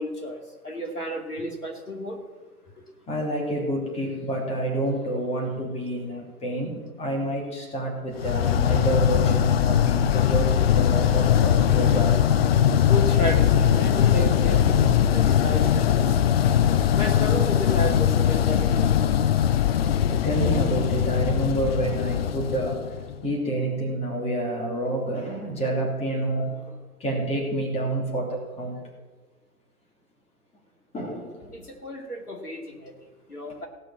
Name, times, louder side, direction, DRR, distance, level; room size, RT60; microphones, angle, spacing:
voice 1, 0.0-2.2 12.9-14.8 15.1-16.2 17.0-19.2 31.5-33.7, equal, 90° left, 2 dB, 2.5 m, -32 dB
voice 2, 3.1-12.3 16.4-16.5 16.9-17.4 20.2-22.8 23.2-26.7 27.0-28.8 30.9-31.5, right 1 dB, 15° left, 0 dB, 3.0 m, -28 dB
sound 1, 8.2-23.2, left 9 dB, 45° left, 0.6 m, -21 dB
16.5 x 6.1 x 7.4 m, 1.3 s
figure-of-eight pair, 120°, 44 cm